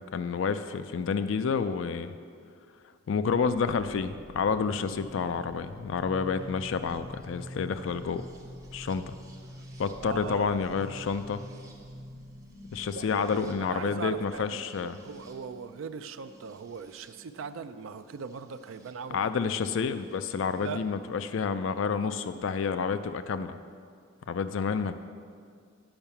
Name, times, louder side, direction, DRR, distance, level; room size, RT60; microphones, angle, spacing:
voice 1, 0.1-2.1 3.1-8.2 8.7-9.1 9.8-11.4 12.7-15.0 19.1-23.6 24.3-24.9, left 5 dB, 65° left, 11 dB, 0.4 m, -29 dB
sound 1, 3.2-18.9 20.1-20.7, equal, 15° right, 0.9 m, -47 dB
voice 2, 10.0-10.7 12.9-14.7 15.0-19.3 20.6-20.8, right 6 dB, 70° right, 10 dB, 0.4 m, -40 dB
8.8 x 5.6 x 6.9 m, 2.2 s
head